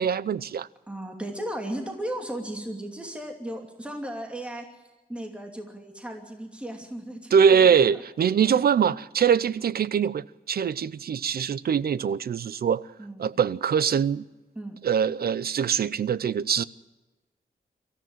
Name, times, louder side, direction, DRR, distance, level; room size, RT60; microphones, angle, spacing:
voice 1, 0.0-0.7 7.3-12.9 13.2-14.2 14.8-16.6, right 7 dB, 75° right, 0.6 m, -23 dB
voice 2, 0.9-4.6 5.1-7.7 7.9-8.0 13.0-13.3 14.6-14.8, right 1 dB, 5° right, 2.7 m, -35 dB
23.5 x 14.5 x 9.1 m
wide cardioid pair, 165°, 16 cm